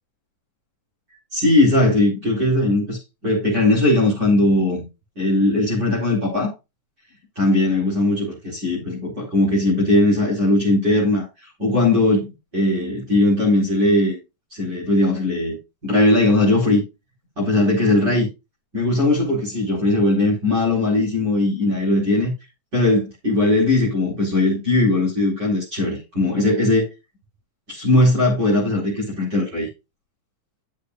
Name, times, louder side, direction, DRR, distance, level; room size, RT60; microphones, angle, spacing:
voice 1, 1.3-4.8 5.2-6.5 7.4-14.2 14.5-15.6 15.8-16.8 17.4-18.3 18.7-22.3 22.7-26.9 27.7-29.7, left 2 dB, 30° right, 4.8 m, -19 dB
12.0 x 7.4 x 2.4 m
omnidirectional pair, 3.8 m